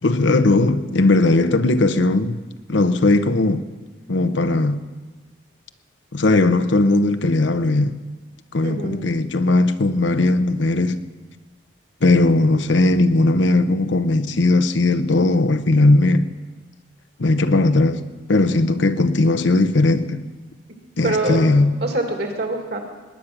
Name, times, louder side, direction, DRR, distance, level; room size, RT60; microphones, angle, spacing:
voice 1, 0.0-2.4 2.7-3.7 4.1-4.8 6.1-8.0 8.5-11.0 12.0-16.3 17.2-18.0 18.3-20.2 21.0-21.7, left 2 dB, 75° left, 0.8 m, -18 dB
voice 2, 8.6-9.1 21.0-21.4 21.8-22.8, right 2 dB, 60° right, 2.4 m, -24 dB
20.0 x 10.0 x 6.0 m
head